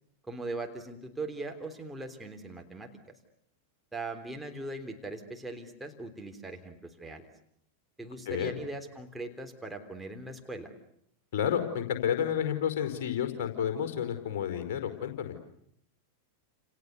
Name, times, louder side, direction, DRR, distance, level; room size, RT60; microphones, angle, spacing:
voice 1, 0.3-2.9 3.9-7.3 8.0-10.7, right 2 dB, 5° right, 3 dB, 3.5 m, -40 dB
voice 2, 11.3-15.3, left 9 dB, 50° left, 6 dB, 4.7 m, -30 dB
30.0 x 29.0 x 6.9 m, 0.71 s
figure-of-eight pair, 90°, 0 cm